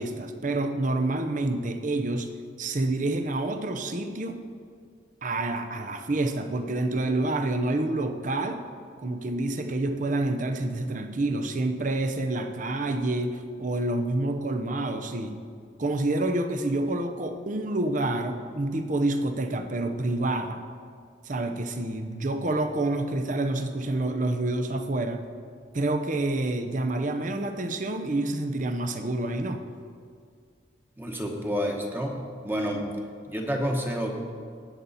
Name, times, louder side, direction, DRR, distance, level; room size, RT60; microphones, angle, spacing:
voice 1, 0.0-2.3 2.6-4.4 5.2-8.6 9.0-15.4 15.8-20.6 21.2-25.2 25.7-29.6, right 2 dB, 45° right, 7 dB, 0.7 m, -28 dB
voice 2, 31.0-32.9 33.3-34.1, equal, 10° right, 1 dB, 1.2 m, -29 dB
18.5 x 7.0 x 4.2 m, 2.2 s
head